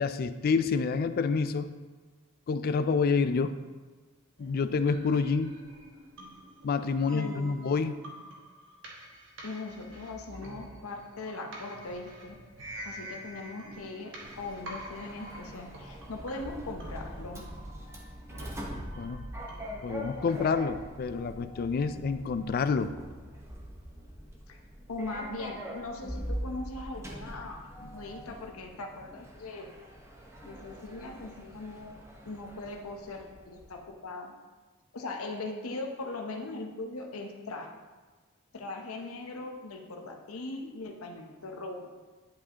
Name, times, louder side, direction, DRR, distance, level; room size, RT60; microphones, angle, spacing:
voice 1, 0.0-1.7 2.5-3.6 4.4-5.5 6.6-8.0 19.0-19.2 19.8-22.9, left 5 dB, 45° left, 11 dB, 0.3 m, -28 dB
sound 1, 4.4-20.5, right 1 dB, 60° right, 1.3 m, -47 dB
voice 2, 7.1-7.6 9.4-12.4 12.8-17.4 24.5-24.6 24.9-29.7 30.5-34.3 34.9-37.7 38.5-41.9, left 2 dB, 75° left, 3 dB, 0.8 m, -40 dB
Sliding door, 14.2-33.8, equal, 15° right, 0.8 m, -43 dB
10.5 x 4.8 x 2.9 m, 1.3 s
head